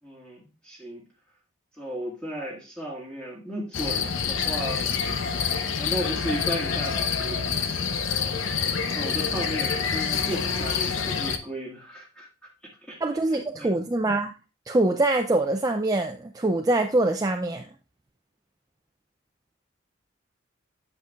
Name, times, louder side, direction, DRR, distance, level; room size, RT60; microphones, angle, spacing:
voice 1, 0.0-1.0 1.8-4.9 5.8-7.6 8.9-12.3 12.9-13.0 13.5-13.7, equal, 5° left, 1.7 m, -34 dB
sound 1, 3.7-11.4, left 6 dB, 80° left, 0.7 m, -27 dB
voice 2, 13.0-14.3 14.7-17.7, right 2 dB, 20° right, 0.3 m, -24 dB
8.0 x 6.6 x 2.3 m
head